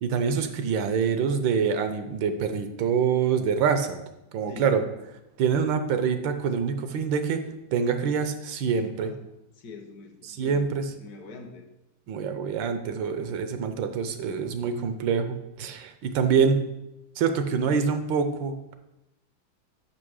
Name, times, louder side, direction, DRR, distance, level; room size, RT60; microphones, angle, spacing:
voice 1, 0.0-4.0 4.3-4.8 5.4-7.4 7.7-9.1 10.2-10.9 12.1-16.6 17.2-18.7, right 6 dB, 85° right, 8 dB, 1.5 m, -25 dB
voice 2, 8.8-9.2 9.5-11.7, left 3 dB, 60° left, 6 dB, 1.2 m, -44 dB
6.2 x 5.3 x 6.3 m, 0.93 s
omnidirectional pair, 2.0 m